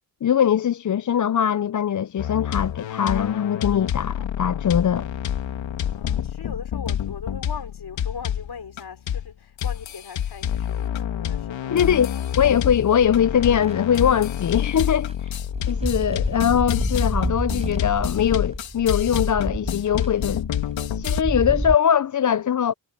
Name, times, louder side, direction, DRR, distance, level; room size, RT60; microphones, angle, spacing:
voice 1, 0.2-5.1 11.7-12.1 12.4-15.4 15.7-20.4 20.9-22.7, left 8 dB, 45° left, 0.6 m, -21 dB
sound 1, 2.2-8.8 9.1-9.3 9.6-21.2, left 10 dB, 90° left, 2.6 m, -28 dB
voice 2, 5.9-12.2, left 5 dB, 60° left, 4.4 m, -39 dB
sound 2, 12.7-13.7 14.4-14.6 14.9-21.8, right 1 dB, 15° right, 7.1 m, -30 dB
supercardioid pair, 45°, 44 cm